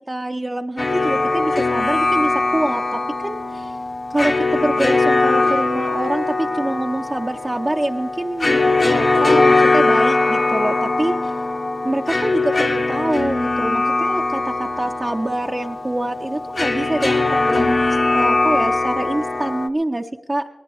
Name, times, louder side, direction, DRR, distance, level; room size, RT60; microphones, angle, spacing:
voice 1, 0.1-3.8 4.1-11.4 11.8-20.5, right 1 dB, 25° right, 2 dB, 0.6 m, -25 dB
sound 1, 0.8-19.7, left 3 dB, 50° left, 1.2 m, -20 dB
20.0 x 18.5 x 3.0 m, 1.1 s
wide cardioid pair, 70°, 0 cm